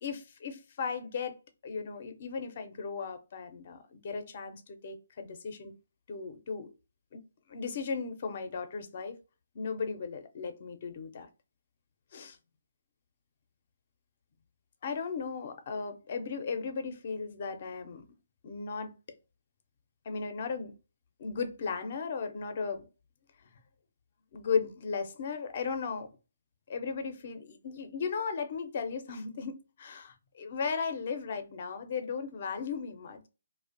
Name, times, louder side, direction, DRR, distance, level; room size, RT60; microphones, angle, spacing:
voice 1, 0.0-1.4 1.6-5.7 6.1-6.7 7.1-7.2 7.5-9.2 9.5-11.3 12.1-12.4 14.8-18.1 18.4-18.9 20.1-20.8 21.2-22.8 24.3-26.1 26.7-33.3, left 5 dB, 45° left, 0.5 m, -36 dB
2.4 x 2.1 x 2.5 m
hypercardioid pair, 150°, 0 cm